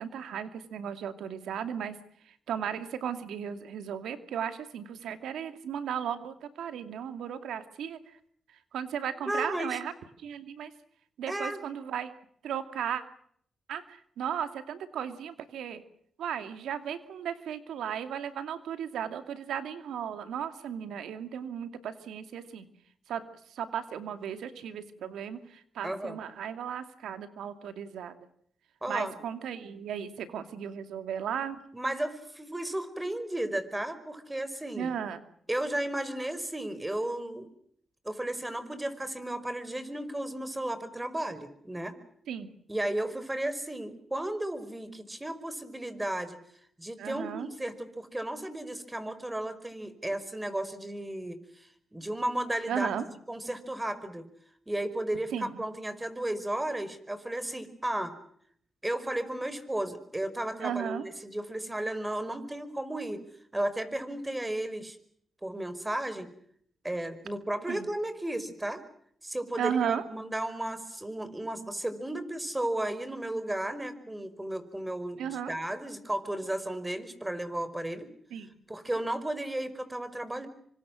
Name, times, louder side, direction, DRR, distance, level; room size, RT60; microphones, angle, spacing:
voice 1, 0.0-1.9 2.5-8.0 8.7-9.9 10.2-10.7 11.2-12.1 12.4-13.0 13.7-15.8 16.2-22.7 23.1-23.2 23.5-28.1 28.9-31.6 34.8-35.2 42.3-42.5 47.0-47.5 52.7-53.0 55.3-55.6 60.6-61.0 67.7-67.9 69.6-70.0 75.2-75.5 78.3-78.5, right 8 dB, 85° right, 10 dB, 2.5 m, -35 dB
voice 2, 9.3-9.8 11.3-11.6 25.8-26.2 28.8-29.2 31.7-34.9 35.5-37.5 38.1-41.9 42.7-46.4 46.8-52.9 53.3-54.2 54.7-58.2 58.8-63.2 63.5-65.0 65.4-66.3 66.8-68.8 69.2-78.1 78.7-80.5, right 1 dB, 15° right, 12 dB, 5.2 m, -34 dB
27.5 x 25.0 x 6.4 m, 0.64 s
cardioid pair, 60°, 0 cm